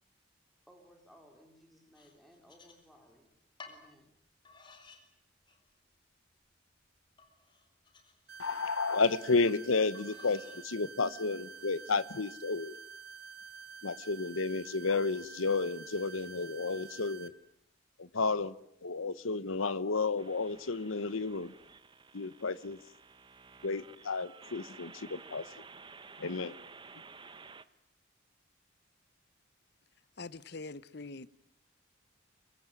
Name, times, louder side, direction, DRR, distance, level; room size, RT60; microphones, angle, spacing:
voice 1, 0.7-3.3 3.6-4.1, equal, ahead, 4.1 m, -60 dB
sound 1, 1.9-3.2 3.6-3.8 4.4-5.0 5.5-6.0 6.5-6.6 7.2-8.8 9.9-10.6 11.2-11.7, left 4 dB, 25° left, 4.1 m, -56 dB
sound 2, 8.3-17.3, right 5 dB, 50° right, 2.0 m, -49 dB
voice 2, 8.4-12.8 13.8-17.3 18.0-18.5 18.8-21.5 22.1-22.8 23.6-25.4 26.2-26.5, left 4 dB, 90° left, 1.0 m, -32 dB
sound 3, 20.2-27.6, right 4 dB, 25° right, 1.1 m, -53 dB
voice 3, 30.2-31.3, left 3 dB, 55° left, 1.0 m, -43 dB
24.5 x 23.5 x 9.1 m
head